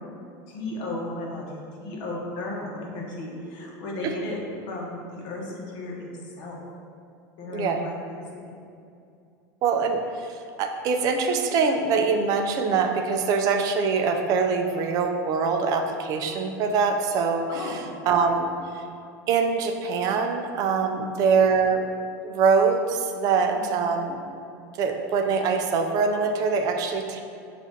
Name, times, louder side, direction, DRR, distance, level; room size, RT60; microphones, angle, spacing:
voice 1, 0.5-4.4 4.7-6.6 7.4-8.5 14.2-14.4 17.5-17.9 20.9-21.1 23.5-23.8, left 2 dB, 50° left, -2 dB, 0.9 m, -35 dB
voice 2, 9.6-18.8 19.3-21.9 22.2-24.2 24.7-27.2, right 5 dB, 40° right, 4 dB, 0.3 m, -24 dB
6.7 x 2.5 x 2.7 m, 2.5 s
supercardioid pair, 155°, 10 cm